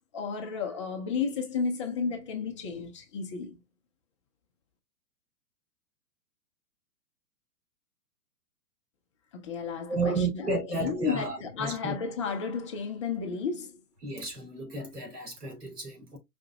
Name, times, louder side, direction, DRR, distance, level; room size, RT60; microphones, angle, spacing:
voice 1, 0.1-3.6 9.3-10.5 10.8-13.8, left 5 dB, 20° left, 0.4 m, -32 dB
voice 2, 9.9-11.9 14.0-16.2, right 3 dB, 85° right, 2.8 m, -32 dB
5.1 x 3.7 x 2.3 m
hypercardioid pair, 135°, 45 cm